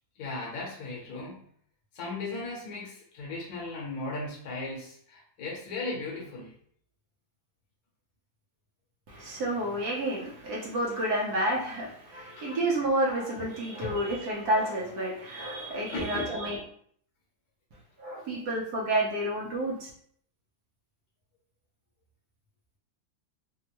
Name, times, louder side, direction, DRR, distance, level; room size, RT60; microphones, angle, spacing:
voice 1, 0.2-1.4 1.9-6.5 12.4-12.5 13.4-13.5 13.8-14.1 15.9-16.6, left 2 dB, 60° left, -2 dB, 1.3 m, -37 dB
voice 2, 9.1-16.6 18.0-19.9, right 1 dB, 65° right, -3 dB, 1.1 m, -30 dB
3.5 x 2.1 x 2.8 m, 0.62 s
omnidirectional pair, 2.0 m